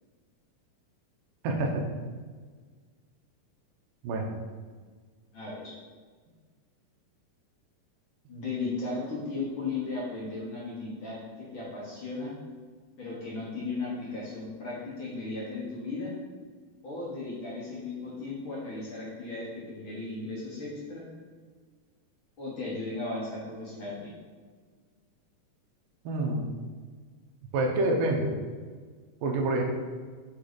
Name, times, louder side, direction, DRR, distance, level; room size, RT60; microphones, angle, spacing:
voice 1, 1.4-1.8 4.0-4.3 26.1-26.5 27.5-28.4 29.2-29.6, right 2 dB, 75° right, 1 dB, 2.3 m, -27 dB
voice 2, 5.3-5.8 8.3-12.3 13.0-16.1 16.8-21.0 22.4-24.1, left 3 dB, 65° left, -6 dB, 1.2 m, -36 dB
8.4 x 3.2 x 4.0 m, 1.5 s
omnidirectional pair, 4.1 m